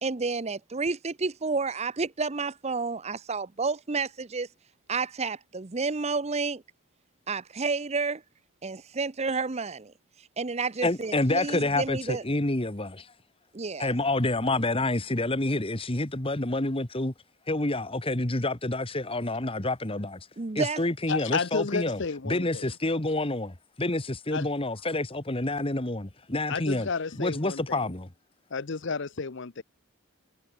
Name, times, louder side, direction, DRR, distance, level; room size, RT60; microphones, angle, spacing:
voice 1, 0.0-4.5 4.9-6.6 7.3-8.2 8.6-9.9 10.4-12.2 13.5-13.9 20.4-20.8, right 4 dB, 30° right, 0.7 m, -30 dB
voice 2, 10.8-13.1 13.8-17.1 17.5-20.2 20.5-22.0 22.3-26.9 27.2-28.1, left 2 dB, 25° left, 1.6 m, -28 dB
voice 3, 21.1-22.7 24.3-24.5 26.5-27.9 28.5-29.6, left 4 dB, 60° left, 0.8 m, -32 dB
head